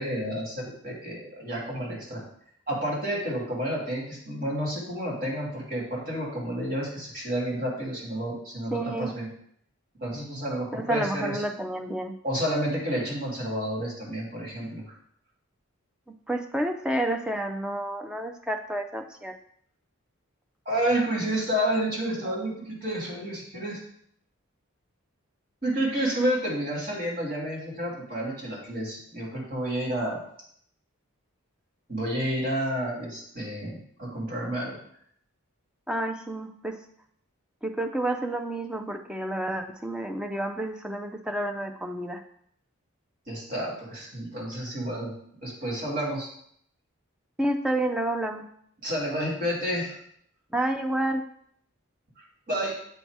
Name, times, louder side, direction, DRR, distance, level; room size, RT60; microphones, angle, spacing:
voice 1, 0.0-2.2 2.7-9.3 10.0-11.4 12.2-14.8 20.7-23.8 25.6-30.2 31.9-34.8 43.3-45.1 45.4-46.3 48.8-50.0 52.5-52.7, right 1 dB, 40° right, -4 dB, 2.1 m, -30 dB
voice 2, 8.7-9.1 10.7-12.1 16.3-19.3 35.9-36.7 37.6-42.2 47.4-48.4 50.5-51.2, right 1 dB, 5° right, 4 dB, 0.4 m, -29 dB
8.0 x 2.8 x 4.6 m, 0.66 s
head